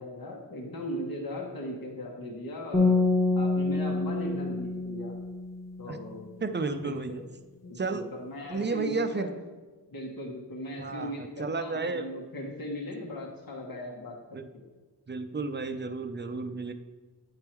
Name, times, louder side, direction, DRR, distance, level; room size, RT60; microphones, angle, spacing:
voice 1, 0.0-3.0 3.3-5.2 5.8-6.3 6.8-7.2 7.6-9.3 9.9-14.6, left 1 dB, 55° left, -1 dB, 1.2 m, -38 dB
sound 1, 2.7-5.9, left 3 dB, 5° left, 0.9 m, -27 dB
voice 2, 6.4-7.2 7.8-8.1 8.5-9.3 10.8-12.0 14.3-14.5 15.1-16.7, right 3 dB, 25° right, 8 dB, 0.5 m, -32 dB
8.8 x 3.6 x 4.5 m, 1.3 s
cardioid pair, 50°, 41 cm